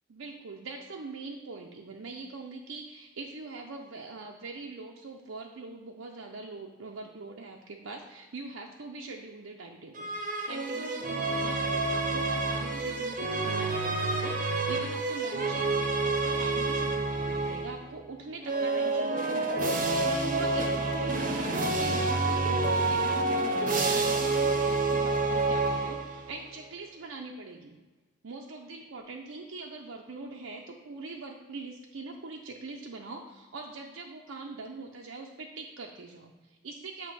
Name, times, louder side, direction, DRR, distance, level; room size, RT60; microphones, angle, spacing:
voice 1, 0.1-10.1 10.5-27.8 28.2-37.1, right 3 dB, 75° right, 1 dB, 0.6 m, -43 dB
sound 1, 9.9-17.8 18.4-26.3, right 3 dB, 40° right, 0.7 m, -28 dB
7.8 x 3.0 x 6.1 m, 1.2 s
head